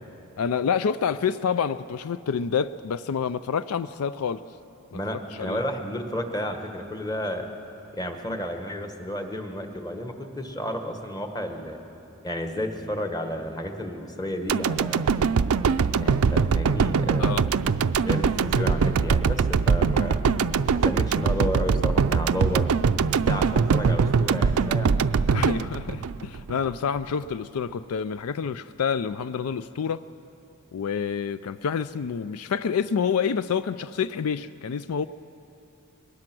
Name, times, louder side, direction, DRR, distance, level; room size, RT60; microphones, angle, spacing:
voice 1, 0.4-4.4 4.9-5.6 8.2-8.4 17.2-17.5 20.2-20.4 25.3-30.0 30.7-35.0, left 6 dB, 75° left, 14 dB, 0.4 m, -28 dB
voice 2, 4.9-7.5 7.9-11.8 12.2-15.1 16.0-17.4 18.0-20.2 20.7-22.7 23.3-25.0, equal, 20° left, 5 dB, 1.4 m, -32 dB
sound 1, 14.5-26.7 27.1-27.2, right 5 dB, 75° right, 0.5 m, -22 dB
22.5 x 19.5 x 6.1 m, 2.9 s
head